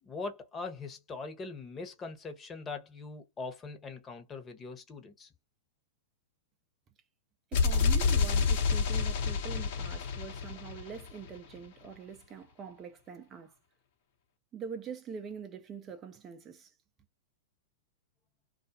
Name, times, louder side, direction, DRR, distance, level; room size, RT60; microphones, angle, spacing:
voice 1, 0.0-5.3, left 4 dB, 25° left, 1.0 m, -41 dB
sound 1, 7.5-11.4, left 5 dB, 60° left, 1.0 m, -28 dB
voice 2, 7.5-13.5 14.5-16.7, right 6 dB, 30° right, 0.6 m, -44 dB
2.4 x 2.3 x 2.7 m
hypercardioid pair, 110°, 0 cm